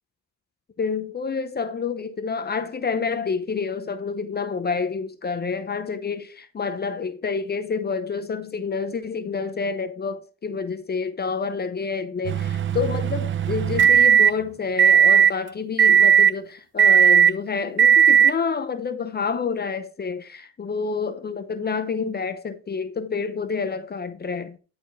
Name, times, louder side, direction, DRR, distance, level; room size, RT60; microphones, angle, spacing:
voice 1, 0.8-24.6, left 5 dB, 35° left, 0.8 m, -28 dB
sound 1, 12.2-14.3 14.8-15.3 15.8-16.3 16.8-17.3 17.8-18.3, right 8 dB, 40° right, 0.6 m, -16 dB
11.0 x 4.3 x 4.1 m
cardioid pair, 90°, 30 cm